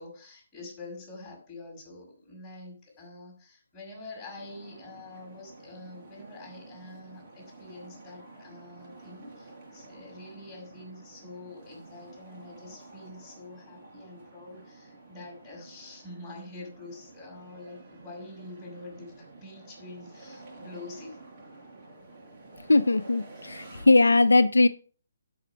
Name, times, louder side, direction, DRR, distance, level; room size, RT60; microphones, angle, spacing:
voice 1, 0.0-21.2, left 2 dB, 15° left, -1 dB, 6.5 m, -46 dB
sound 1, 4.3-23.9, right 2 dB, 35° right, 5.3 m, -50 dB
voice 2, 22.7-24.7, left 2 dB, 90° left, 11 dB, 0.6 m, -20 dB
12.5 x 6.5 x 4.9 m, 0.40 s
hypercardioid pair, 145°, 0 cm